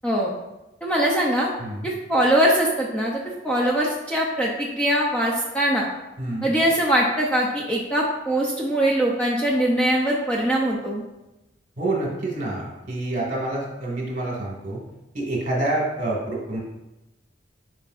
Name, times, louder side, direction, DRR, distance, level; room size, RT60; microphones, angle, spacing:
voice 1, 0.8-1.5 1.8-5.9 6.4-11.0, right 1 dB, 5° left, -3 dB, 0.6 m, -22 dB
voice 2, 1.6-1.9 6.2-6.5 11.8-14.8 15.1-16.6, right 2 dB, 45° right, -3 dB, 2.1 m, -27 dB
9.0 x 5.0 x 2.5 m, 0.98 s
head